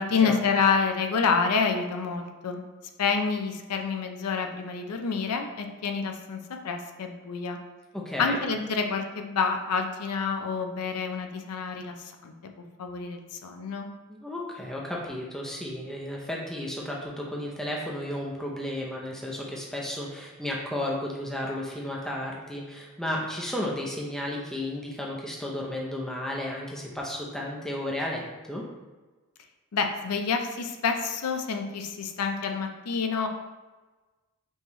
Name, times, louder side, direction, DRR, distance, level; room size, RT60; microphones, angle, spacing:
voice 1, 0.0-2.6 3.0-7.6 8.2-12.5 12.8-13.9 29.7-33.3, left 5 dB, 90° left, 5 dB, 0.5 m, -28 dB
voice 2, 7.9-8.4 14.1-28.6, left 1 dB, ahead, -3 dB, 0.6 m, -33 dB
5.4 x 3.1 x 3.0 m, 1.2 s
head